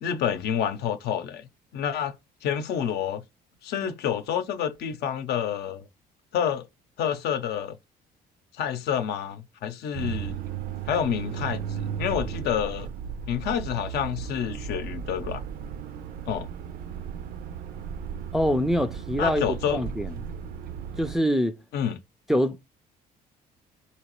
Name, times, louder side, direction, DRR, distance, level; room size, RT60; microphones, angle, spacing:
voice 1, 0.0-2.2 2.4-3.2 3.6-5.8 6.3-6.7 7.0-7.8 8.5-10.4 10.9-12.9 13.3-15.4 16.3-16.5 19.2-19.8 21.7-22.0, left 9 dB, 75° left, 0.6 m, -28 dB
sound 1, 9.9-21.1, right 8 dB, 60° right, 0.5 m, -35 dB
voice 2, 18.3-19.4 19.7-20.1 21.0-21.5 22.3-22.7, equal, ahead, 0.4 m, -24 dB
3.9 x 2.9 x 3.0 m
cardioid pair, 110°, 17 cm